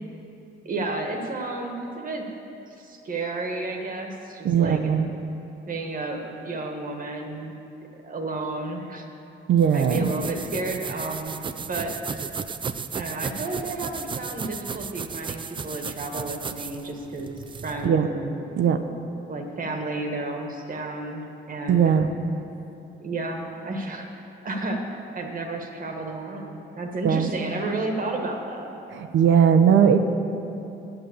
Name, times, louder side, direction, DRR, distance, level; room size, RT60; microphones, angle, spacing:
voice 1, 0.6-2.2 2.8-4.9 5.7-7.5 8.0-9.1 9.7-11.4 11.7-11.9 12.9-17.4 17.6-18.4 19.3-22.0 23.0-28.7, right 2 dB, 45° right, 3 dB, 1.3 m, -32 dB
voice 2, 4.4-5.1 9.5-10.1 17.8-18.1 18.6-18.8 21.7-22.1 27.0-27.3 28.9-30.0, right 8 dB, 70° right, 8 dB, 0.7 m, -19 dB
sound 1, 9.6-17.9, right 5 dB, 25° right, 0.4 m, -34 dB
7.9 x 7.5 x 8.2 m, 2.8 s
cardioid pair, 90°, 20 cm